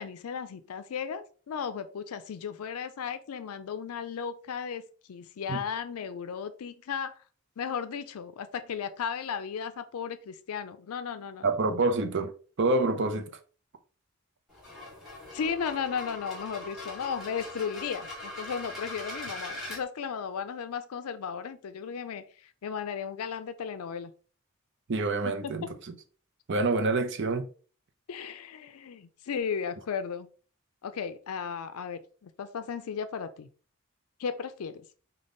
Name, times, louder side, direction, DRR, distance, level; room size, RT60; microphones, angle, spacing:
voice 1, 0.0-7.2 7.6-11.5 15.3-22.2 22.6-24.1 25.2-25.7 28.1-30.3 30.8-33.5 34.2-34.8, left 6 dB, 85° left, 0.4 m, -35 dB
voice 2, 11.4-12.3 12.6-13.3 24.9-25.6 26.5-27.4, right 3 dB, 55° right, 0.6 m, -26 dB
sound 1, 14.5-19.8, left 2 dB, ahead, 1.9 m, -41 dB
5.2 x 2.3 x 3.8 m
head